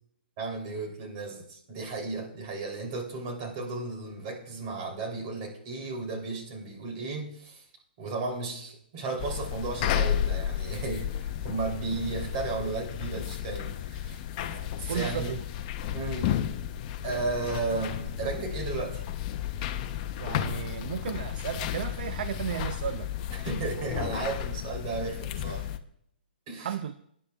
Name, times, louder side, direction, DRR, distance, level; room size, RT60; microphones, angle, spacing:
voice 1, 0.4-7.6 8.0-14.2 14.5-15.3 15.9-16.3 17.0-19.0 23.3-25.7 26.5-26.7, right 3 dB, 40° right, 3.2 m, -34 dB
sound 1, 9.2-25.8, left 11 dB, 35° left, 0.7 m, -33 dB
voice 2, 14.5-15.4 20.2-23.1 26.6-26.9, right 9 dB, 60° right, 0.5 m, -34 dB
23.5 x 10.0 x 2.4 m
hypercardioid pair, 135°, 6 cm